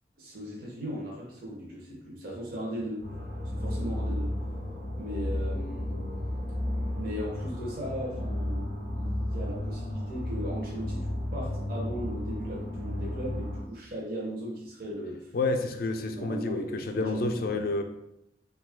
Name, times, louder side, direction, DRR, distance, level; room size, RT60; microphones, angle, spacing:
voice 1, 0.2-3.1 3.5-4.3 4.9-6.0 6.7-8.6 8.9-15.3 16.1-17.7, equal, 55° right, -2 dB, 0.6 m, -38 dB
sound 1, 2.3-8.5, equal, 5° right, 0.5 m, -50 dB
sound 2, 3.0-13.6, left 1 dB, 75° right, 1.2 m, -33 dB
voice 2, 15.3-17.8, left 2 dB, 55° left, 6 dB, 0.3 m, -29 dB
3.1 x 2.3 x 3.3 m, 0.81 s
head